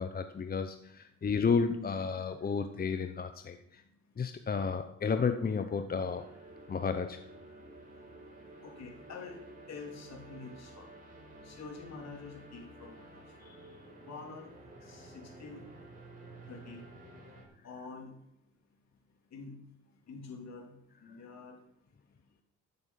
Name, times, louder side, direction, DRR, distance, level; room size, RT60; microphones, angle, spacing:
voice 1, 0.0-3.8 4.2-6.3 6.7-7.2 13.4-13.6, left 5 dB, 30° left, 0.8 m, -32 dB
sound 1, 6.0-17.5, right 2 dB, 30° right, 6.0 m, -52 dB
voice 2, 8.6-9.4 9.7-10.9 11.4-13.2 14.1-14.5 14.8-15.6 16.5-16.8 17.6-18.1 19.3-19.6 20.1-20.7 21.0-21.6, left 4 dB, 60° left, 3.4 m, -46 dB
14.0 x 7.9 x 5.9 m
cardioid pair, 90°, 30 cm